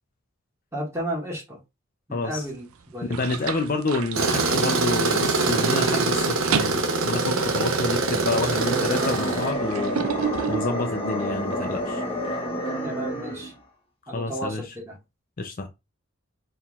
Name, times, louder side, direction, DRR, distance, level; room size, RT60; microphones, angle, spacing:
voice 1, 0.7-1.6 2.1-3.2 12.8-13.5 14.1-15.0, right 1 dB, 15° right, 1.8 m, -33 dB
voice 2, 2.1-2.5 3.1-10.1 10.5-12.0 14.1-14.8 15.4-15.7, left 2 dB, 40° left, 0.5 m, -28 dB
sink water, 2.4-2.7 3.1-5.2 5.6-5.9 6.2-11.4, right 7 dB, 90° right, 0.5 m, -32 dB
Tools, 4.1-9.5, right 3 dB, 75° right, 0.9 m, -24 dB
sound 1, 8.2-13.6, equal, 25° left, 1.0 m, -29 dB
4.6 x 3.6 x 2.4 m
head